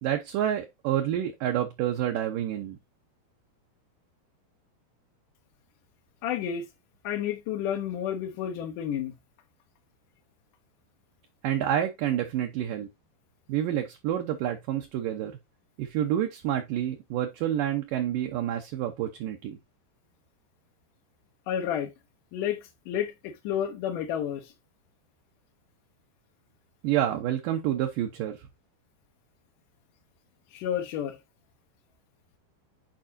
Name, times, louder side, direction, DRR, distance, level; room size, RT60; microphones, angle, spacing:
voice 1, 0.0-2.8 11.4-12.9 13.5-15.4 15.8-19.6 26.8-28.5, right 11 dB, 70° right, 2.2 m, -28 dB
voice 2, 6.2-6.6 7.0-9.1 21.5-21.9 22.3-22.6 22.9-24.5 30.5-31.2, left 9 dB, 70° left, 2.0 m, -30 dB
9.1 x 4.9 x 2.7 m
omnidirectional pair, 4.8 m